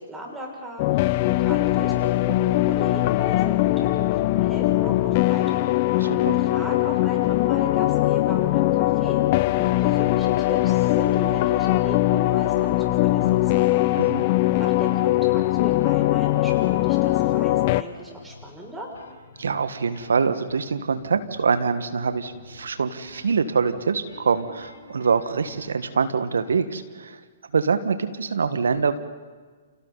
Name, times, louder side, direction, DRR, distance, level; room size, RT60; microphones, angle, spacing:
voice 1, 0.0-5.7 6.0-13.7 14.6-18.9, right 1 dB, 10° right, -1 dB, 6.6 m, -38 dB
sound 1, 0.8-17.8, left 17 dB, 40° left, 0.7 m, -21 dB
voice 2, 6.0-6.4 14.0-14.2 19.4-27.2 27.5-29.0, right 5 dB, 75° right, 10 dB, 1.7 m, -24 dB
sound 2, 14.8-26.1, left 5 dB, 80° left, 6.8 m, -50 dB
30.0 x 29.0 x 4.2 m, 1.5 s
hypercardioid pair, 125°, 0 cm